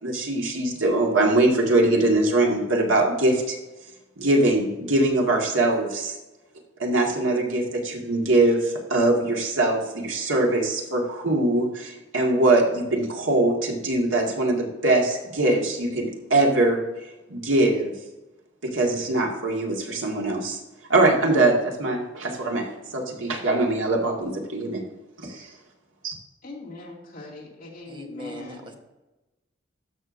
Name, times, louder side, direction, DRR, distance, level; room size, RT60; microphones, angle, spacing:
voice 1, 0.0-3.6 4.2-6.2 6.8-16.8 17.3-17.9 18.6-20.6 20.9-22.7 22.9-24.8 25.2-25.5 26.0-26.2, right 2 dB, 85° right, 0 dB, 1.9 m, -22 dB
voice 2, 26.4-28.7, left 2 dB, 45° left, -4 dB, 2.4 m, -40 dB
voice 3, 27.9-28.8, right 1 dB, 25° right, 3 dB, 1.2 m, -40 dB
12.5 x 6.5 x 2.6 m, 1.0 s
head